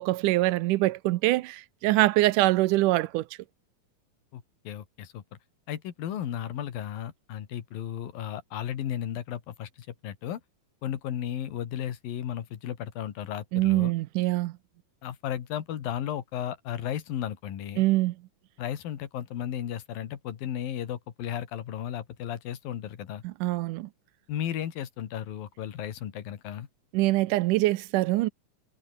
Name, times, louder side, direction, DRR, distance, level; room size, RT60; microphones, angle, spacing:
voice 1, 0.0-3.3 13.5-14.5 17.8-18.2 23.2-23.9 26.9-28.3, right 18 dB, 75° right, 2.0 m, -24 dB
voice 2, 4.3-5.2 5.7-10.4 10.8-13.9 15.0-17.9 18.6-23.2 24.3-26.7, left 10 dB, 80° left, 3.8 m, -34 dB
omnidirectional pair, 4.0 m